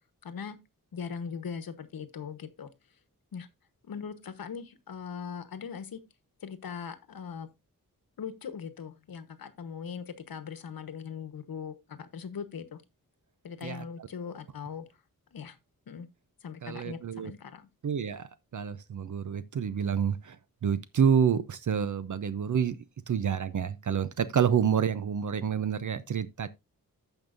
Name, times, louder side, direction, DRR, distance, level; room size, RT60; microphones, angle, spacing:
voice 1, 0.2-0.6 0.9-2.7 3.3-3.5 3.8-6.0 6.4-7.5 8.2-12.8 13.4-14.8 15.3-15.6 15.9-16.1 16.4-17.7, left 6 dB, 85° left, 1.1 m, -40 dB
voice 2, 16.6-17.3 17.8-22.8 23.1-26.5, right 7 dB, 60° right, 0.6 m, -28 dB
15.0 x 5.4 x 2.5 m
wide cardioid pair, 120°, 35 cm